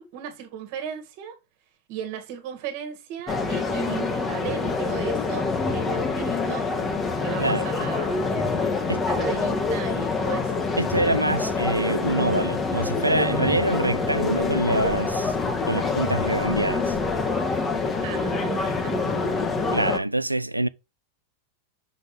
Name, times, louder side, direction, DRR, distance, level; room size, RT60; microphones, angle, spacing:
voice 1, 0.0-1.4 1.9-6.7 7.2-8.5 9.0-10.6 18.0-19.9, right 8 dB, 45° right, 1.8 m, -36 dB
sound 1, 3.3-20.0, left 4 dB, 20° left, 1.3 m, -26 dB
voice 2, 10.8-15.3 15.7-17.0 19.7-20.7, right 1 dB, 85° right, 0.3 m, -25 dB
6.1 x 5.3 x 3.2 m
figure-of-eight pair, 90°, 0 cm